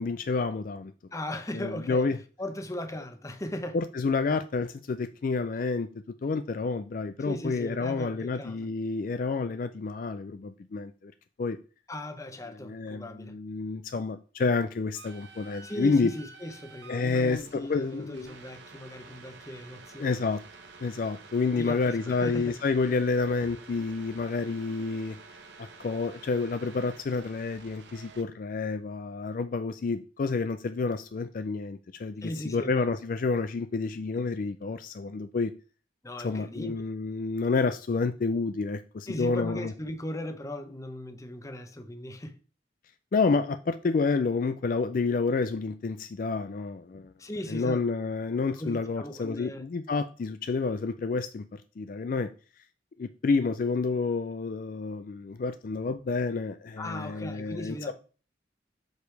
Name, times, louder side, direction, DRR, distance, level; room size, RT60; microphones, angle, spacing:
voice 1, 0.0-0.9 1.5-2.2 3.7-5.9 6.2-11.1 11.4-11.6 12.6-16.1 16.9-18.4 20.0-20.4 20.8-25.2 25.6-35.5 36.2-39.7 43.1-47.1 47.5-52.3 53.0-57.9, left 4 dB, 50° left, 0.4 m, -29 dB
voice 2, 1.1-2.0 2.4-3.8 7.2-8.7 11.9-13.3 15.6-20.2 21.6-22.5 32.2-32.9 36.0-36.8 39.1-42.4 47.2-47.8 48.6-49.6 56.8-57.9, left 1 dB, 20° left, 0.8 m, -38 dB
sound 1, 14.9-28.2, right 4 dB, 80° right, 1.0 m, -50 dB
8.1 x 5.0 x 3.2 m
head